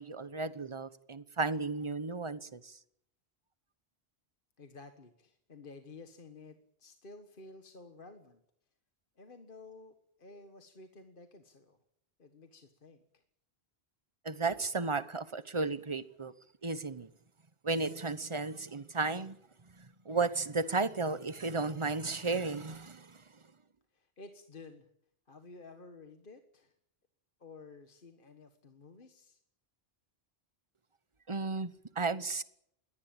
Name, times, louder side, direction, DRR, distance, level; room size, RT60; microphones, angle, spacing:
voice 1, 0.0-2.8 14.2-16.3 16.6-17.1 17.6-19.4 19.8-23.2 31.3-32.4, right 3 dB, 30° right, 1.1 m, -34 dB
voice 2, 4.6-8.4 9.2-11.8 12.2-13.2 23.9-24.9 25.3-26.7 27.4-29.4, left 3 dB, 55° left, 1.7 m, -53 dB
22.0 x 18.5 x 8.8 m
omnidirectional pair, 1.1 m